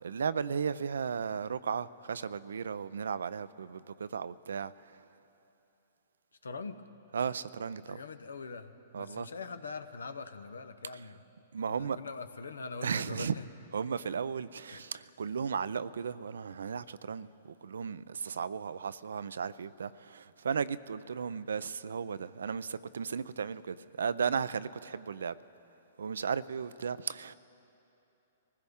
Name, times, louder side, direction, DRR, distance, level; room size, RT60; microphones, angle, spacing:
voice 1, 0.0-5.0 7.1-8.0 8.9-9.3 11.5-12.0 12.8-13.3 13.7-17.3 17.6-25.4 26.0-27.3, right 6 dB, 80° right, 0.4 m, -35 dB
voice 2, 6.4-6.8 7.9-11.2 11.7-13.5 14.7-14.9, left 4 dB, 90° left, 0.8 m, -43 dB
24.5 x 16.0 x 3.6 m
hypercardioid pair, 125°, 0 cm